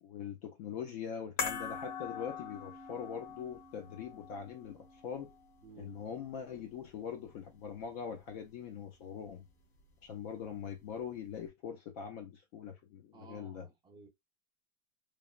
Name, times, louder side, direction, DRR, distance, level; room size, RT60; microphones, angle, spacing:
voice 1, 0.0-5.3 5.8-9.4 10.0-13.7, left 7 dB, 35° left, 0.4 m, -42 dB
sound 1, 1.4-7.8 8.1-8.2, left 5 dB, 60° left, 1.3 m, -43 dB
voice 2, 5.6-6.1 13.1-14.1, right 4 dB, 10° right, 0.5 m, -55 dB
3.3 x 2.0 x 2.3 m
supercardioid pair, 145°, 38 cm